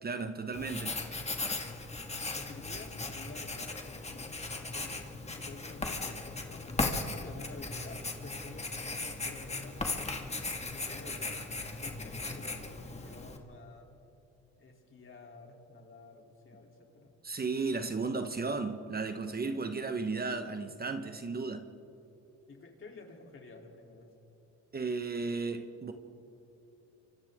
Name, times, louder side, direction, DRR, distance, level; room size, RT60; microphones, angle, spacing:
voice 1, 0.0-1.0 17.2-21.7 24.7-25.9, right 4 dB, 30° right, 1.2 m, -34 dB
Writing, 0.5-13.4, left 3 dB, 20° left, 2.0 m, -37 dB
voice 2, 2.2-11.4 11.8-13.9 14.6-17.2 22.5-24.1, left 3 dB, 45° left, 3.5 m, -51 dB
29.0 x 25.5 x 3.7 m
cardioid pair, 90°, 30 cm